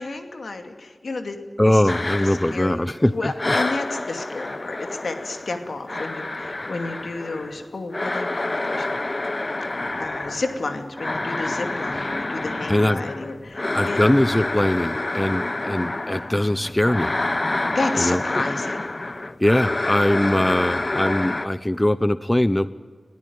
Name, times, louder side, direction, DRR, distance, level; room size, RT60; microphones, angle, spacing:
voice 1, 0.0-1.4 1.7-1.8 2.2-2.8 3.1-9.0 10.0-14.0 17.7-18.8, left 3 dB, 75° left, 6 dB, 2.5 m, -31 dB
voice 2, 1.6-3.5 12.7-13.0 13.7-17.1 18.0-18.2 19.4-22.7, left 1 dB, 15° left, 14 dB, 0.8 m, -21 dB
sound 1, 1.9-3.1 3.4-21.5, left 2 dB, 45° left, 1.1 m, -28 dB
21.0 x 14.5 x 9.5 m, 1.5 s
cardioid pair, 40°, 0 cm